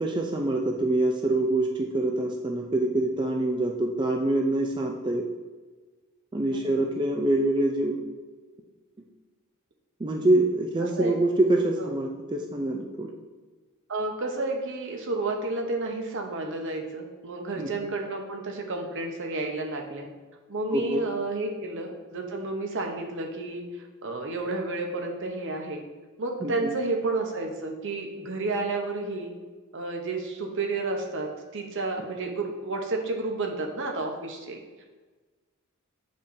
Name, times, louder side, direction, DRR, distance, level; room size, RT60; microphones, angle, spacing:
voice 1, 0.0-5.2 6.3-8.0 10.0-13.1 17.6-17.9 20.7-21.0 26.4-26.7, right 2 dB, 20° right, 1 dB, 0.4 m, -25 dB
voice 2, 10.8-11.2 11.8-11.9 13.9-20.1 20.5-23.6 24.0-25.8 26.2-29.3 29.7-34.6, right 2 dB, 60° right, 2 dB, 0.9 m, -31 dB
8.4 x 5.2 x 2.7 m, 1.3 s
head